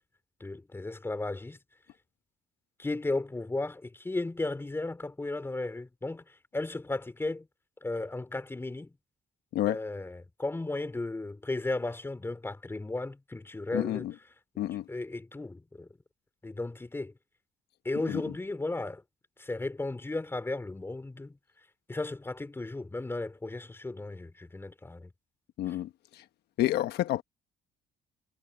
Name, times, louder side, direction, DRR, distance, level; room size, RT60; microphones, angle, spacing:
voice 1, 0.4-1.6 2.8-6.2 6.5-7.5 7.8-8.9 9.7-14.1 14.9-15.9 16.4-17.1 17.9-19.0 19.4-21.4 21.9-25.1 25.7-25.8, left 2 dB, 15° left, 3.6 m, -35 dB
voice 2, 13.7-14.1 14.6-14.8 18.1-18.2 25.6-26.2 26.6-27.2, left 14 dB, 75° left, 1.2 m, -29 dB
cardioid pair, 110°, 17 cm